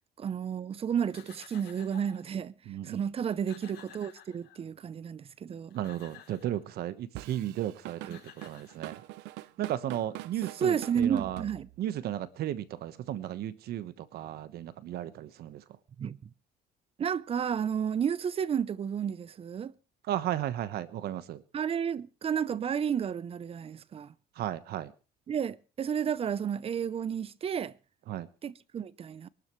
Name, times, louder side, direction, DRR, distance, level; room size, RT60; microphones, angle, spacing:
voice 1, 0.2-2.5 2.8-5.8 8.1-8.2 10.6-11.7 16.0-16.3 17.0-19.7 21.5-24.1 25.3-27.7 28.4-29.3, right 8 dB, 35° right, 0.6 m, -32 dB
sound 1, 1.0-2.3 2.9-3.0 3.2-4.8 5.5-6.6 7.7-7.8 8.0-9.3, left 10 dB, 70° left, 5.3 m, -54 dB
voice 2, 2.7-3.0 5.7-9.0 9.6-11.4 11.8-15.6 20.0-21.4 24.3-24.9 28.1-28.3, right 12 dB, 65° right, 1.2 m, -34 dB
Drum kit / Drum, 7.1-12.0, right 17 dB, 85° right, 0.6 m, -44 dB
23.0 x 12.5 x 3.1 m
cardioid pair, 115°, 17 cm